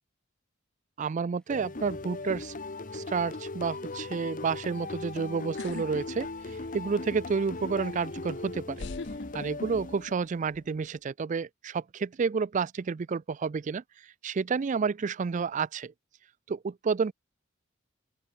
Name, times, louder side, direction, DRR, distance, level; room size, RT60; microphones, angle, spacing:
voice 1, 1.0-2.5 2.9-6.3 6.7-8.9 9.3-13.8 14.2-15.9 16.5-17.1, right 5 dB, 40° right, 0.4 m, -30 dB
sound 1, 1.1-8.9, left 1 dB, 5° left, 6.8 m, -69 dB
sound 2, 1.5-10.4, left 3 dB, 40° left, 1.1 m, -38 dB
sound 3, 5.6-5.9 6.2-6.9 7.9-8.0 8.8-10.1 10.4-10.9, left 4 dB, 60° left, 0.7 m, -41 dB
open air
head